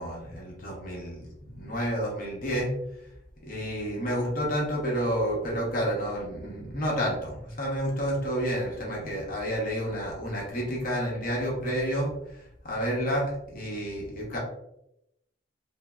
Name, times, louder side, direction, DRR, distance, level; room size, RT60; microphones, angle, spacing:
voice 1, 0.0-2.7 3.4-14.4, equal, 50° left, -3 dB, 0.8 m, -30 dB
3.0 x 2.0 x 2.2 m, 0.81 s
head